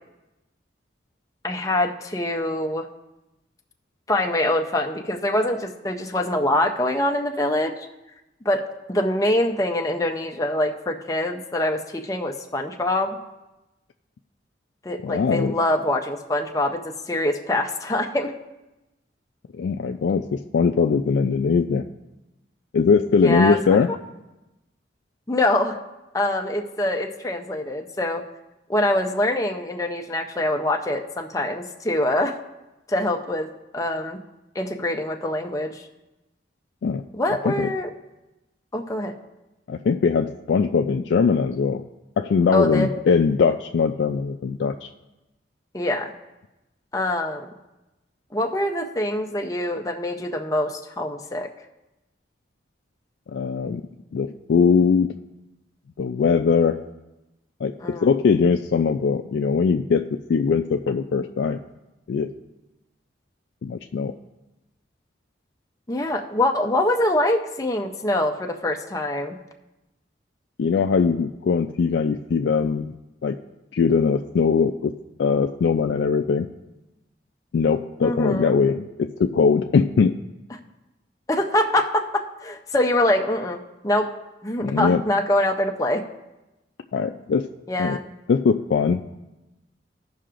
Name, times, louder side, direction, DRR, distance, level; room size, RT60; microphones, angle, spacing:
voice 1, 1.4-2.9 4.1-7.9 8.4-13.2 14.8-18.3 23.2-23.8 25.3-25.8 26.1-28.2 28.7-32.4 32.9-33.5 33.7-34.2 34.5-35.8 37.1-37.9 38.7-39.1 42.5-42.9 45.7-46.1 46.9-47.5 48.3-51.5 57.8-58.1 65.9-69.4 78.0-78.6 81.3-84.1 84.4-86.0 87.7-88.0, left 1 dB, 20° left, 3 dB, 0.6 m, -24 dB
voice 2, 15.0-15.5 19.5-21.9 22.7-23.9 36.8-37.0 37.5-37.7 39.7-41.8 42.2-44.9 53.3-53.8 54.1-55.1 56.0-56.8 57.6-60.0 60.3-61.6 62.1-62.3 63.6-64.1 70.6-72.9 73.2-73.4 73.7-74.9 75.2-76.5 77.5-80.2 84.6-85.0 86.9-87.5 87.8-88.0 88.3-89.0, left 5 dB, 70° left, 5 dB, 0.3 m, -21 dB
16.5 x 5.6 x 2.5 m, 1.0 s
head